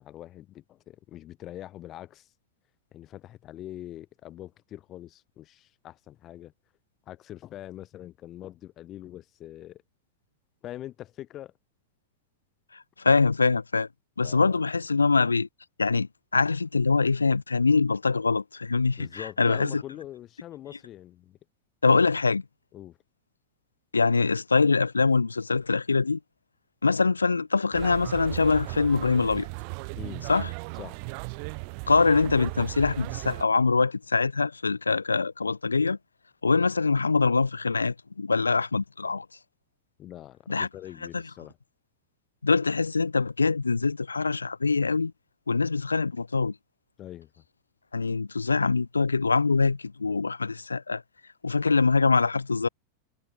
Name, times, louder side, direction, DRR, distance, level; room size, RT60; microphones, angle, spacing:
voice 1, 0.0-2.3 2.9-6.5 7.1-9.8 10.6-11.5 14.2-14.6 19.0-21.4 22.7-23.0 29.9-30.3 30.8-31.0 40.0-41.6 47.0-47.4, left 13 dB, 30° left, 3.8 m, -43 dB
voice 2, 12.7-13.9 14.2-15.5 15.8-19.8 21.8-22.4 23.9-26.2 26.8-29.5 30.3-30.5 31.9-36.0 36.4-39.3 40.5-40.7 41.1-41.2 42.4-45.1 45.5-46.6 47.9-51.0 51.4-52.7, left 4 dB, 80° left, 0.3 m, -24 dB
sound 1, 27.7-33.4, right 40 dB or more, 45° right, 2.0 m, -36 dB
figure-of-eight pair, 90°, 0 cm